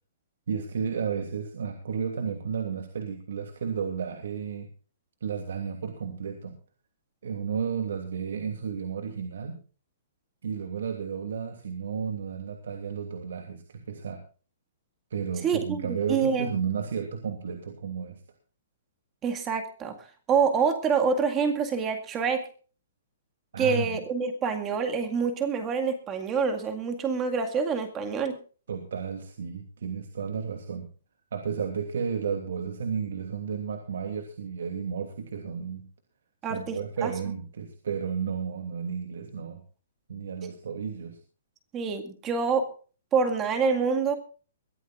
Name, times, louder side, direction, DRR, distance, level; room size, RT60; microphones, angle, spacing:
voice 1, 0.5-4.7 5.2-6.6 7.2-9.6 10.4-14.2 15.1-18.2 23.5-24.0 28.7-30.9 31.3-35.8 36.5-39.6 40.1-41.2, right 6 dB, 65° right, 5 dB, 2.8 m, -32 dB
voice 2, 15.4-16.5 19.2-20.0 20.3-22.4 23.6-28.4 36.4-37.1 41.7-42.7 43.1-44.2, right 5 dB, 15° right, 6 dB, 2.0 m, -26 dB
22.5 x 15.0 x 2.5 m, 0.38 s
hypercardioid pair, 180°, 0 cm